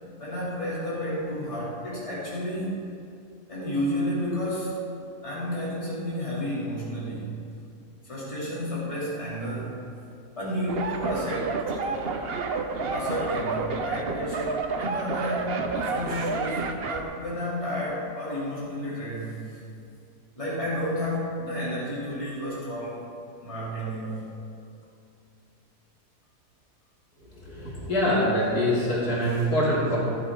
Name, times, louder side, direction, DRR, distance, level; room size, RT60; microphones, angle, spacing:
voice 1, 0.2-2.8 3.5-4.8 5.2-7.4 8.0-9.8 10.4-12.1 12.9-19.6 20.4-23.0 23.4-24.3 29.2-29.5, equal, 20° left, -8 dB, 3.0 m, -31 dB
sound 1, 10.7-17.0, right 4 dB, 50° right, 0.8 m, -30 dB
voice 2, 27.5-30.0, equal, 70° left, -7 dB, 3.4 m, -24 dB
14.5 x 11.0 x 3.7 m, 2.4 s
omnidirectional pair, 1.7 m